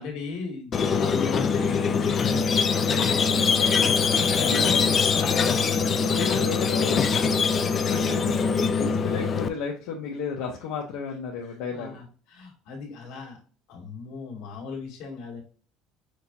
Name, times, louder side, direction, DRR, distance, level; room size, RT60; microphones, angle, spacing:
voice 1, 0.0-7.6 11.7-13.4 13.7-15.4, left 4 dB, 65° left, 0 dB, 2.0 m, -37 dB
Squeak, 0.7-9.5, left 5 dB, 20° left, 0.3 m, -23 dB
voice 2, 4.4-4.9 6.1-7.0 7.9-8.0 8.5-12.0, left 6 dB, 85° left, -1 dB, 0.9 m, -33 dB
6.3 x 2.9 x 2.6 m, 0.38 s
cardioid pair, 180°, 0 cm